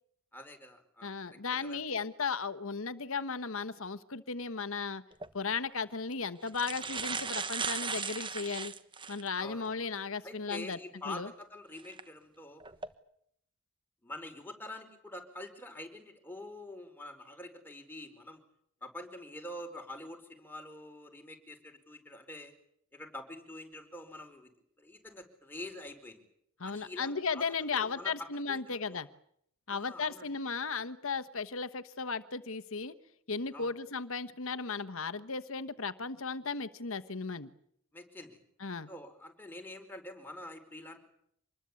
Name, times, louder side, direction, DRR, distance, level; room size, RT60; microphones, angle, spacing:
voice 1, 0.3-1.8 9.4-9.8 10.2-12.6 14.0-18.4 18.8-22.5 22.9-24.5 24.8-26.2 26.6-27.4 27.7-28.1 28.5-29.0 29.7-30.3 33.5-33.7 37.9-38.4 38.9-41.0, left 1 dB, 10° left, 4 dB, 4.7 m, -46 dB
voice 2, 1.0-5.0 5.3-8.7 9.1-10.8 11.1-11.3 26.6-29.1 29.7-32.9 33.3-37.5 38.6-38.9, left 5 dB, 65° left, 11 dB, 1.2 m, -35 dB
sound 1, 5.1-5.3 6.1-6.2 6.5-9.3 9.8-9.9 11.8-12.0 12.6-12.9, right 5 dB, 20° right, 1.1 m, -37 dB
26.0 x 21.0 x 8.5 m, 0.71 s
head